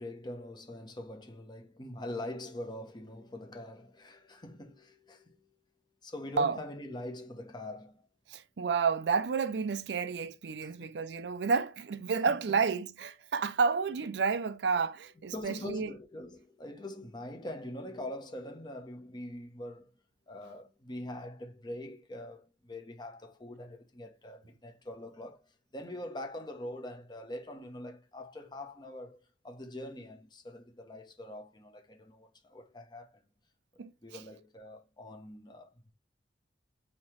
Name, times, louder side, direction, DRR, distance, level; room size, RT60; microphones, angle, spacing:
voice 1, 0.0-5.5 6.0-8.1 10.6-10.9 15.3-19.9 20.3-33.2 34.0-35.9, left 1 dB, 25° left, 0.9 m, -43 dB
voice 2, 8.3-15.9 33.8-33.9, right 5 dB, 75° right, 0.4 m, -30 dB
5.3 x 2.9 x 3.1 m
head